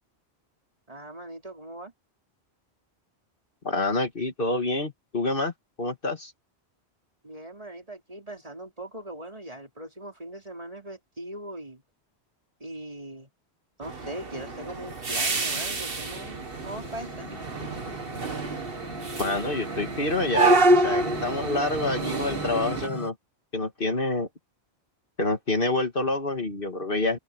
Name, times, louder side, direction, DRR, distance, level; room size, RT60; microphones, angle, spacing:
voice 1, 0.9-1.9 7.2-11.8 12.6-13.3 13.8-17.3, right 1 dB, 35° right, 4.3 m, -40 dB
voice 2, 3.6-5.5 5.8-6.3 19.2-23.2 23.5-24.3 25.2-27.2, left 2 dB, 55° left, 2.3 m, -27 dB
sound 1, 13.8-22.9, right 2 dB, 60° right, 1.9 m, -27 dB
sound 2, 16.0-23.1, left 1 dB, 30° left, 1.8 m, -41 dB
open air
omnidirectional pair, 1.1 m